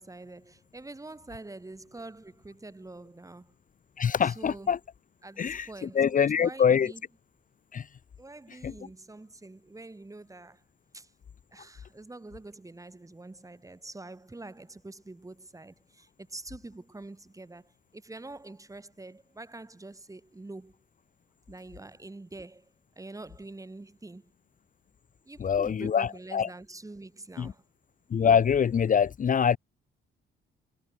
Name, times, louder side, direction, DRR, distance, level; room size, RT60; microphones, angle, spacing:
voice 1, 0.0-3.6 4.2-4.7 5.2-7.0 8.2-10.6 10.9-11.1 11.5-20.8 21.5-24.3 25.2-27.7, right 2 dB, 15° right, 4.8 m, -45 dB
voice 2, 4.0-4.8 5.4-6.9 7.7-7.9 8.6-8.7 25.4-26.5 27.4-27.5 28.1-29.6, left 7 dB, 40° left, 1.0 m, -24 dB
cardioid pair, 90°, 20 cm